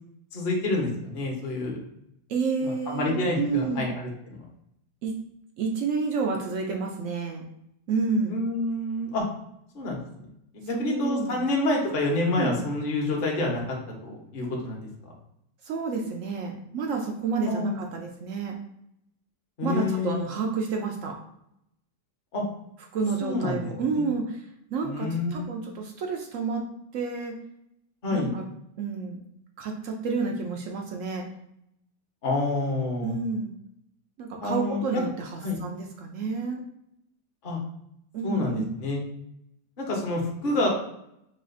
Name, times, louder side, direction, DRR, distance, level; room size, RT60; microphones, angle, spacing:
voice 1, 0.3-1.8 2.6-4.4 8.3-9.2 9.7-10.0 10.5-13.6 14.0-14.8 17.5-17.8 19.6-20.2 22.3-22.4 23.2-24.0 24.8-25.5 28.0-28.3 32.2-33.1 34.4-35.0 35.4-35.6 37.4-37.6 38.2-39.0 39.8-40.7, left 2 dB, 40° left, -1 dB, 0.9 m, -28 dB
voice 2, 2.3-3.9 5.0-5.2 5.6-7.4 7.9-8.4 10.7-11.4 12.4-12.5 15.6-18.5 19.6-21.2 22.9-24.4 24.7-26.7 26.9-27.3 28.1-28.4 28.8-29.2 29.6-31.3 33.0-33.5 34.2-36.6 38.1-38.7, right 4 dB, 70° right, 2 dB, 0.7 m, -29 dB
5.5 x 2.4 x 2.5 m, 0.77 s
omnidirectional pair, 1.9 m